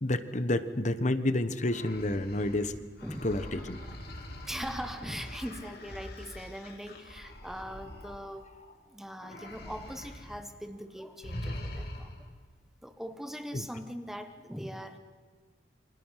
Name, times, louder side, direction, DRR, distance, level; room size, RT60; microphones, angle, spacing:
voice 1, 0.0-2.7 3.2-3.8 13.5-13.7, left 1 dB, 40° left, 12 dB, 1.3 m, -29 dB
sound 1, 1.6-8.8 9.2-10.4 10.7-10.9 11.2-12.3, left 1 dB, 55° left, 3.3 m, -43 dB
voice 2, 3.0-3.4 4.4-8.5 8.9-12.1 12.8-15.0, equal, ahead, 7 dB, 1.3 m, -41 dB
29.0 x 26.0 x 5.8 m, 1.4 s
head